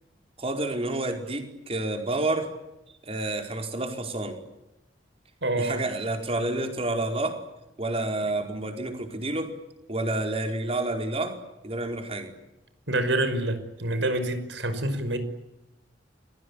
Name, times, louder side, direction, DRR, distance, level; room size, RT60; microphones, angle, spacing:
voice 1, 0.4-2.5 3.0-4.4 5.5-7.4 7.8-9.6 9.9-11.4 11.6-12.3, right 2 dB, 35° right, 4 dB, 5.0 m, -29 dB
voice 2, 5.4-5.8 12.9-15.2, right 1 dB, 90° right, 10 dB, 5.8 m, -27 dB
30.0 x 22.5 x 8.5 m, 0.91 s
head